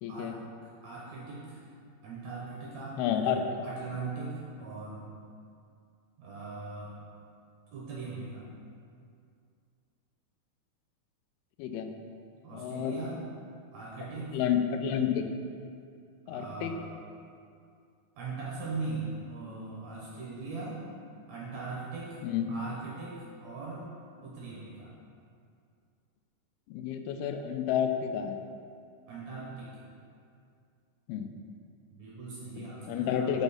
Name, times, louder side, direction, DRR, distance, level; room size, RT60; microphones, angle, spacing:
voice 1, 0.0-0.4 3.0-3.5 11.6-11.9 12.5-13.0 14.0-15.3 16.3-16.8 22.2-22.5 26.7-28.4 31.1-31.3 32.6-33.4, left 9 dB, 90° left, 7 dB, 2.5 m, -30 dB
voice 2, 0.8-1.6 2.0-5.1 6.2-7.0 7.7-8.4 12.4-13.2 13.7-14.4 16.2-16.9 18.2-20.8 21.3-22.2 22.5-23.9 24.2-24.9 29.1-29.7 31.9-33.4, right 3 dB, 70° right, -6 dB, 1.7 m, -40 dB
6.8 x 6.0 x 4.1 m, 2.4 s
omnidirectional pair, 4.4 m